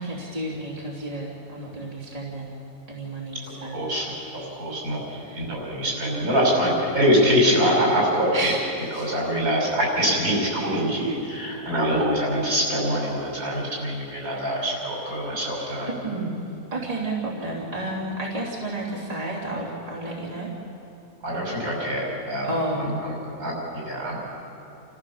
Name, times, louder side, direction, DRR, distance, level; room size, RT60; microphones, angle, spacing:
voice 1, 0.0-2.6 2.9-3.8 5.1-5.5 8.3-9.2 15.9-16.4 16.7-20.5 22.4-22.9, right 2 dB, 25° right, -4 dB, 2.9 m, -31 dB
voice 2, 3.7-4.1 4.5-8.5 8.9-15.9 21.2-22.5 22.8-23.1 23.4-24.2, equal, 70° right, -3 dB, 6.2 m, -24 dB
29.0 x 15.0 x 7.2 m, 2.7 s
omnidirectional pair, 1.6 m